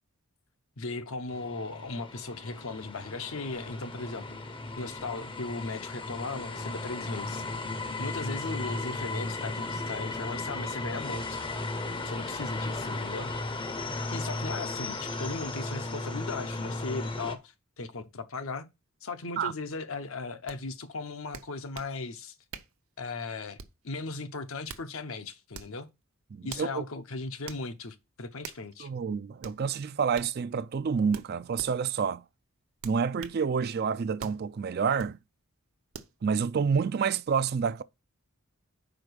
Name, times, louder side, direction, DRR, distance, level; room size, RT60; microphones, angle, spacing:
voice 1, 0.8-4.4 4.8-7.5 8.0-11.4 12.1-13.3 14.1-18.7 19.0-22.3 23.0-23.6 23.8-25.9 26.4-28.9, left 3 dB, 65° left, 0.8 m, -37 dB
sound 1, 1.3-17.4, left 2 dB, 20° left, 0.6 m, -35 dB
sound 2, 20.5-20.6 21.3-22.0 22.5-22.8 23.6-23.9 24.5-24.9 25.5-25.8 26.5-26.7 27.5-27.7 28.4-28.7 29.4-29.6 30.1-30.3 31.1-31.7 32.8-33.4 34.2-34.4 35.0-35.2 35.9-36.1, right 6 dB, 70° right, 0.7 m, -44 dB
voice 2, 26.3-26.8 28.8-32.2 32.8-35.2 36.2-37.8, right 6 dB, 45° right, 0.3 m, -28 dB
5.0 x 4.8 x 6.2 m
head